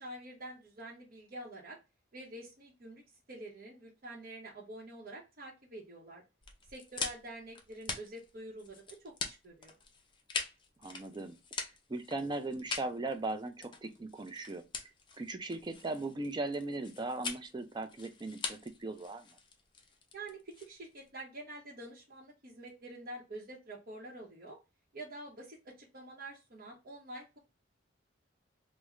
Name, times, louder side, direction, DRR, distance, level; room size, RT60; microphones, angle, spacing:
voice 1, 0.0-1.8 2.1-3.0 3.3-6.2 6.7-9.7 20.1-24.6 24.9-27.4, right 1 dB, 50° right, 0.8 m, -47 dB
sound 1, 6.4-21.1, left 4 dB, 25° left, 0.6 m, -43 dB
voice 2, 10.8-11.4 11.9-14.9 15.2-19.3, right 2 dB, 25° right, 0.4 m, -38 dB
3.6 x 2.1 x 3.1 m
head